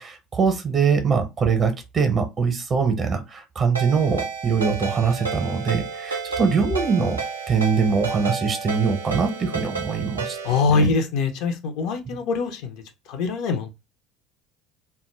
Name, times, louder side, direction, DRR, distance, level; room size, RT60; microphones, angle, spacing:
voice 1, 0.0-7.2 7.5-10.4 10.7-10.9, right 5 dB, 35° right, 0.7 m, -23 dB
Ringtone, 3.7-10.6, right 5 dB, 85° right, 0.5 m, -31 dB
voice 2, 10.4-12.8 13.1-13.7, left 4 dB, 60° left, 0.5 m, -23 dB
2.2 x 2.0 x 3.0 m
figure-of-eight pair, 65°, 0 cm